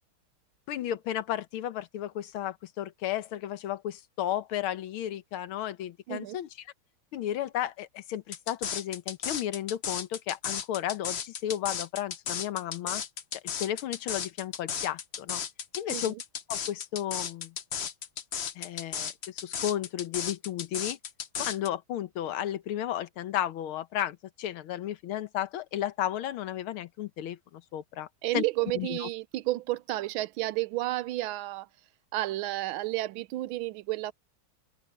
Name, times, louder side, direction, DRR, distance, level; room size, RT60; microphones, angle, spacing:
voice 1, 0.7-6.5 7.1-13.0 13.4-15.4 15.8-16.1 16.5-17.6 18.6-21.0 21.4-28.1 28.3-28.4 28.7-29.1, left 11 dB, 90° left, 1.8 m, -33 dB
sound 1, 8.3-21.7, left 7 dB, 55° left, 0.7 m, -34 dB
voice 2, 15.9-16.2 28.2-31.7 32.1-34.1, right 17 dB, 80° right, 1.4 m, -31 dB
omnidirectional pair, 2.3 m